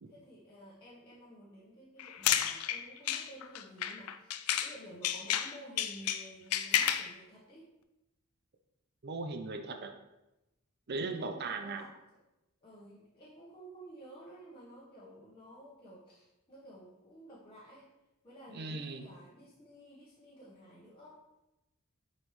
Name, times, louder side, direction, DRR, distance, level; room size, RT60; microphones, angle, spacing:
voice 1, 0.1-7.7 10.9-11.9 12.6-17.9 18.2-21.2, right 1 dB, 25° left, -8 dB, 1.2 m, -53 dB
sound 1, 2.0-4.8 5.0-7.1, left 10 dB, 80° left, 0.4 m, -32 dB
voice 2, 9.0-9.9 10.9-11.8 18.5-19.0, right 3 dB, 50° right, 6 dB, 0.6 m, -38 dB
7.3 x 5.3 x 3.2 m, 0.96 s
head